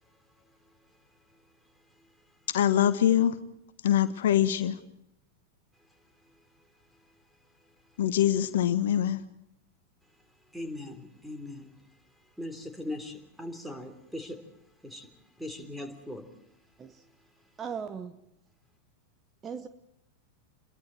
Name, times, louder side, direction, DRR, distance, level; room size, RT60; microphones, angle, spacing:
voice 1, 2.5-3.3 3.8-4.8 8.0-9.2, left 10 dB, 60° left, 1.1 m, -24 dB
voice 2, 10.5-11.8 12.4-14.4 14.8-15.1 15.4-16.3, left 1 dB, ahead, 3.4 m, -40 dB
voice 3, 17.6-18.2 19.4-19.7, right 7 dB, 20° right, 1.0 m, -38 dB
29.0 x 22.5 x 4.5 m
figure-of-eight pair, 90°, 0 cm